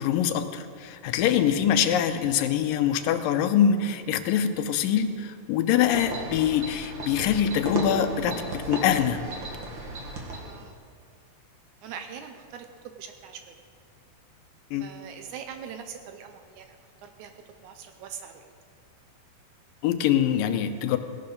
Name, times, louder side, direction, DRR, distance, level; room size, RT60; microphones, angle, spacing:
voice 1, 0.0-9.2 14.7-14.8 19.8-21.0, left 9 dB, 85° left, 9 dB, 2.4 m, -24 dB
sound 1, 5.7-10.6, right 2 dB, 45° right, 1.9 m, -34 dB
voice 2, 10.4-10.8 11.8-13.6 14.8-16.8 17.0-17.3 17.6-18.4, right 7 dB, 75° right, 6 dB, 1.9 m, -42 dB
17.5 x 11.5 x 3.9 m, 2.1 s
omnidirectional pair, 3.9 m